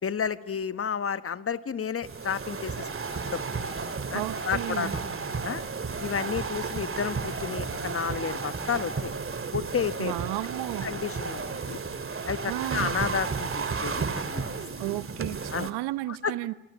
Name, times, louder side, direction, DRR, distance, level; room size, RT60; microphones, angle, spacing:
voice 1, 0.0-2.9 3.3-3.4 4.1-5.0 5.4-5.6 6.0-9.1 9.5-10.1 10.8-11.8 12.3-14.4 15.5-15.7 16.1-16.3, left 7 dB, 35° left, 1.3 m, -31 dB
sound 1, 2.0-15.7, right 4 dB, 30° right, 2.6 m, -33 dB
voice 2, 4.1-4.9 10.0-10.9 12.5-12.9 14.8-16.5, right 18 dB, 70° right, 0.9 m, -33 dB
27.0 x 25.5 x 8.5 m
hypercardioid pair, 55°, 41 cm